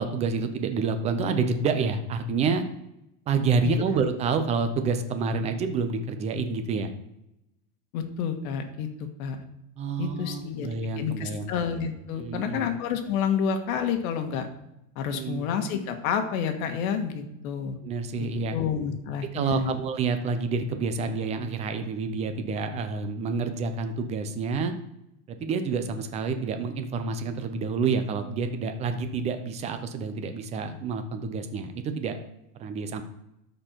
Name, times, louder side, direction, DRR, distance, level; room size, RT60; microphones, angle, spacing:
voice 1, 0.0-2.6 3.3-6.9 9.8-11.5 12.2-12.7 15.1-15.5 17.8-18.6 19.3-24.7 25.3-32.2 32.6-33.0, right 4 dB, 15° right, 8 dB, 0.4 m, -28 dB
voice 2, 7.9-9.4 10.0-10.7 11.0-14.5 14.9-17.8 18.2-19.8, left 7 dB, 65° left, 6 dB, 1.6 m, -29 dB
12.5 x 4.5 x 4.5 m, 0.86 s
supercardioid pair, 155°, 45 cm